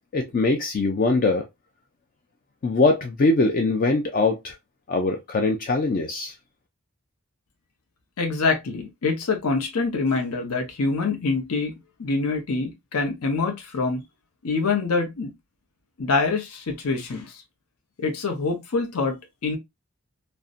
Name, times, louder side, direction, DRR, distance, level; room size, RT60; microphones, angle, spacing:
voice 1, 0.1-1.5 2.6-4.5 4.9-6.3, left 3 dB, 40° left, 0.3 m, -22 dB
voice 2, 8.2-11.7 12.0-14.0 14.4-15.3 16.0-17.4 18.0-19.6, left 4 dB, 80° left, 0.6 m, -25 dB
2.6 x 2.1 x 2.3 m
head